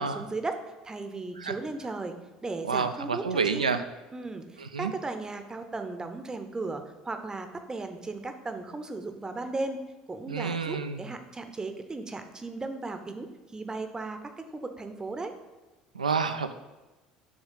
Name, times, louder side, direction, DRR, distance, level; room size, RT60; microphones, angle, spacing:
voice 1, 0.0-3.7 4.1-9.8 10.1-15.3, right 3 dB, 20° right, 7 dB, 0.7 m, -36 dB
voice 2, 2.7-3.8 4.6-4.9 10.3-11.0 15.9-16.5, right 5 dB, 85° right, 9 dB, 0.3 m, -29 dB
7.2 x 3.2 x 5.6 m, 1.1 s
figure-of-eight pair, 60°, 4 cm